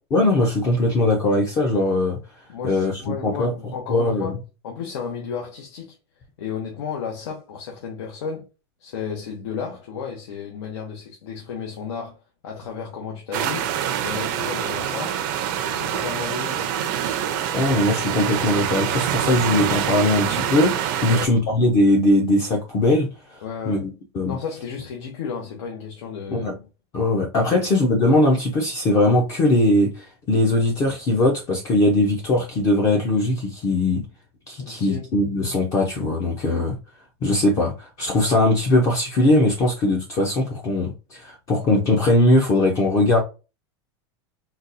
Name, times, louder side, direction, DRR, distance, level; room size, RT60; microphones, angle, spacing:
voice 1, 0.1-2.2 2.6-3.5 3.9-4.3 17.3-24.4 26.3-26.5 26.9-34.0 34.5-36.8 37.2-43.2, left 2 dB, 20° left, 0.5 m, -20 dB
voice 2, 2.5-6.0 6.4-8.5 8.8-13.7 14.0-15.2 15.6-16.7 21.0-21.3 23.4-23.9 24.3-26.5 27.5-27.7 34.6-35.1, left 6 dB, 85° left, 0.9 m, -33 dB
sound 1, 13.3-21.3, right 9 dB, 45° right, 0.5 m, -25 dB
3.9 x 2.2 x 2.5 m
supercardioid pair, 175°, 14 cm